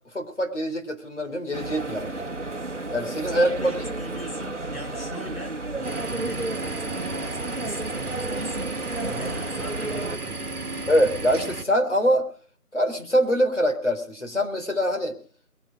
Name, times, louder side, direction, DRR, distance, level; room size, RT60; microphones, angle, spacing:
voice 1, 0.1-2.2 2.9-3.7 9.0-9.3 10.9-12.3 12.7-15.2, equal, 50° left, 4 dB, 3.9 m, -24 dB
sound 1, 1.5-10.2, right 2 dB, 50° right, 1.2 m, -32 dB
voice 2, 3.4-8.7 9.1-10.9, left 1 dB, 90° left, 1 dB, 6.5 m, -41 dB
sound 2, 5.8-11.6, right 3 dB, 75° right, 1.3 m, -33 dB
21.5 x 10.5 x 5.1 m, 0.43 s
figure-of-eight pair, 175°, 45 cm